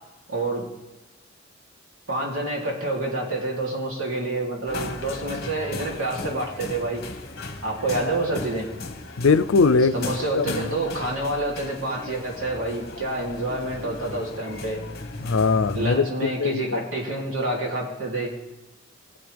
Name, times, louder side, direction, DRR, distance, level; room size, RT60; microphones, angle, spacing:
voice 1, 0.3-0.7 2.1-7.0 7.6-8.7 9.9-14.8 15.7-18.3, right 2 dB, 75° right, -3 dB, 3.1 m, -28 dB
sound 1, 4.7-16.0, left 2 dB, 50° left, 1.3 m, -36 dB
voice 2, 9.2-10.7 15.2-16.8, left 4 dB, 75° left, 13 dB, 0.5 m, -21 dB
20.5 x 7.8 x 3.4 m, 1.1 s
head